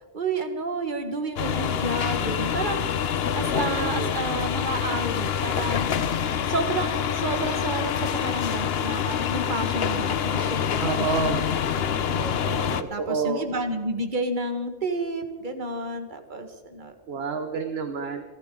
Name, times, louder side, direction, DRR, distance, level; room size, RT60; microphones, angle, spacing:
voice 1, 0.1-2.9 3.3-5.9 6.5-11.3 12.1-16.9, right 2 dB, 40° right, 6 dB, 1.6 m, -30 dB
sound 1, 1.4-12.8, left 8 dB, 55° left, 0.9 m, -26 dB
voice 2, 3.6-4.2 10.8-11.6 12.8-13.4 17.1-18.2, right 5 dB, 55° right, 6 dB, 1.2 m, -29 dB
28.0 x 13.0 x 3.8 m, 1.3 s
omnidirectional pair, 1.4 m